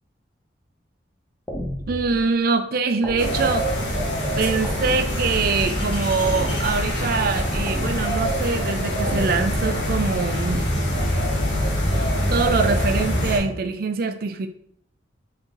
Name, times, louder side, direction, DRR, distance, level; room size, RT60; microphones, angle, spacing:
sound 1, 1.5-2.2 3.0-3.8 4.6-5.5 6.2-7.0 7.7-8.4 9.0-9.7 10.5-11.1, equal, 10° left, 1.0 m, -33 dB
voice 1, 1.9-3.7 4.4-10.6 12.3-14.5, right 4 dB, 55° right, 8 dB, 0.4 m, -24 dB
sound 2, 3.2-13.4, equal, 80° left, 1.6 m, -24 dB
4.5 x 3.7 x 3.1 m, 0.65 s
head